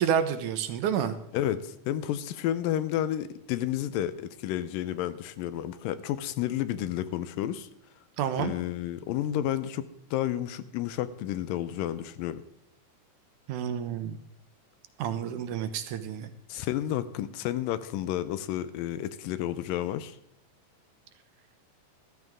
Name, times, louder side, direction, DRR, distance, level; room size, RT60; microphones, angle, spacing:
voice 1, 0.0-1.2 8.2-8.5 13.5-14.2 15.0-16.3, right 8 dB, 75° right, 9 dB, 2.3 m, -29 dB
voice 2, 1.3-7.7 8.4-12.4 16.5-20.2, left 12 dB, 90° left, 14 dB, 2.4 m, -31 dB
14.0 x 13.5 x 3.6 m, 0.79 s
omnidirectional pair, 3.9 m